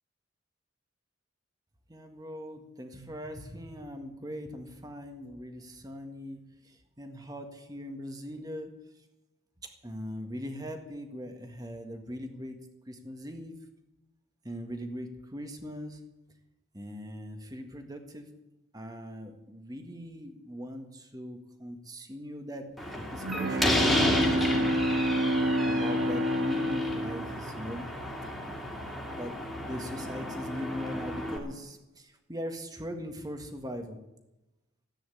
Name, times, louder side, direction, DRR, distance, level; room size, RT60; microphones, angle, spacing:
voice 1, 1.9-8.7 9.8-12.6 12.9-13.6 14.4-16.0 16.7-18.3 18.7-24.7 25.6-27.9 29.1-29.3 29.6-34.0, equal, 20° right, 5 dB, 1.7 m, -40 dB
Slam, 22.8-31.4, left 1 dB, ahead, 2.6 m, -32 dB
Bowed string instrument, 22.9-28.4, equal, 55° right, 1.4 m, -29 dB
14.5 x 9.4 x 9.9 m, 0.96 s
head